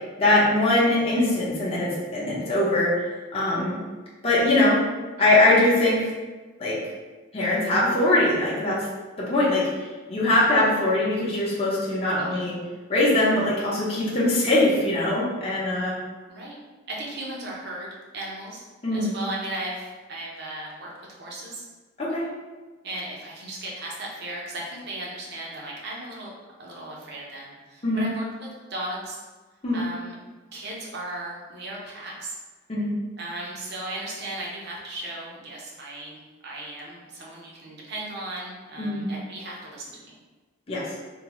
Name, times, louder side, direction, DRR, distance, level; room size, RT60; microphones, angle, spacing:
voice 1, 0.2-2.9 3.3-3.8 4.2-4.8 5.2-6.1 6.6-6.8 7.3-8.8 9.3-9.7 10.1-12.6 12.9-15.9 18.8-19.1 22.0-22.2 27.8-28.1 29.6-29.8 32.7-32.9 38.8-39.1 40.7-40.8, left 2 dB, 30° left, -7 dB, 0.8 m, -22 dB
voice 2, 10.3-10.6 12.1-12.5 16.3-16.5 16.9-18.6 18.9-21.6 22.8-26.3 26.6-29.2 29.7-30.1 30.5-32.4 33.2-36.2 36.4-40.1, right 1 dB, 55° right, -4 dB, 0.8 m, -36 dB
3.7 x 2.2 x 3.0 m, 1.3 s
head